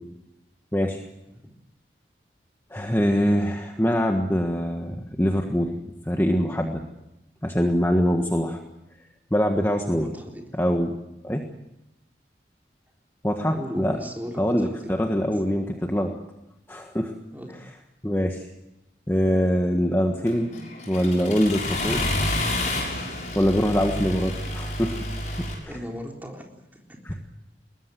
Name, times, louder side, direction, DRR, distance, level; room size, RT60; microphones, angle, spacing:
voice 1, 0.7-1.0 2.7-5.7 6.0-6.8 7.4-8.6 9.3-10.1 10.5-11.0 11.2-11.4 13.2-14.0 14.4-16.1 16.7-17.1 18.0-18.5 19.1-20.5 20.9-22.0 23.3-25.0 25.6-25.8 27.0-27.2, equal, 15° left, 3 dB, 1.5 m, -23 dB
voice 2, 10.0-10.4 13.5-14.7 17.3-17.6 25.7-26.5 26.9-27.0, equal, 10° right, 1 dB, 3.9 m, -36 dB
Accelerating revving vroom, 20.3-25.5, left 1 dB, 40° left, 6.9 m, -29 dB
22.0 x 19.5 x 7.8 m, 0.92 s
head